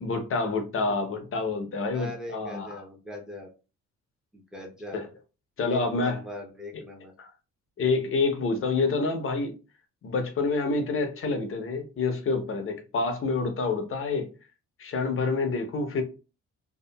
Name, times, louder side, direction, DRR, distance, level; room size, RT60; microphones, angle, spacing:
voice 1, 0.0-2.8 4.9-5.1 5.6-6.2 7.2-7.3 7.8-9.5 10.0-14.3 14.8-16.0, left 3 dB, 45° left, 0.7 m, -27 dB
voice 2, 1.9-3.5 4.3-5.1 5.6-7.1, equal, ahead, 0.7 m, -41 dB
2.7 x 2.3 x 2.2 m
cardioid pair, 90°, 30 cm